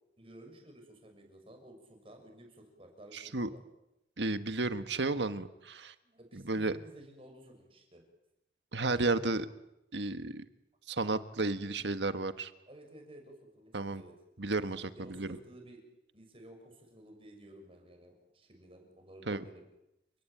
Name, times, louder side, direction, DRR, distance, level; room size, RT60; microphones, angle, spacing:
voice 1, 0.2-3.6 6.0-8.0 12.7-14.1 14.9-15.8 16.1-19.6, right 1 dB, 30° right, 3 dB, 6.8 m, -54 dB
voice 2, 3.1-3.5 4.2-5.9 6.3-6.8 8.7-9.5 9.9-10.4 10.9-12.5 13.7-14.0 14.4-15.4 19.3-19.4, right 2 dB, 80° right, 10 dB, 1.5 m, -33 dB
30.0 x 18.0 x 9.2 m, 0.88 s
head